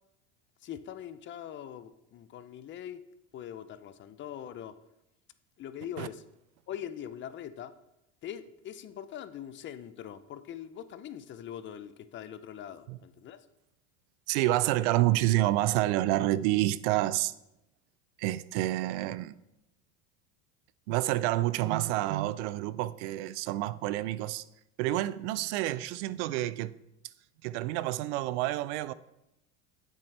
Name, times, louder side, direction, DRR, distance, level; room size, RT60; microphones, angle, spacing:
voice 1, 0.6-3.0 3.3-4.7 5.6-6.2 6.7-7.7 8.2-13.4, left 10 dB, 35° left, 0.5 m, -42 dB
voice 2, 14.3-17.3 18.2-19.4 20.9-24.4 24.8-26.7 27.4-28.9, right 15 dB, 80° right, 0.5 m, -28 dB
7.5 x 7.4 x 3.3 m
supercardioid pair, 110°, 34 cm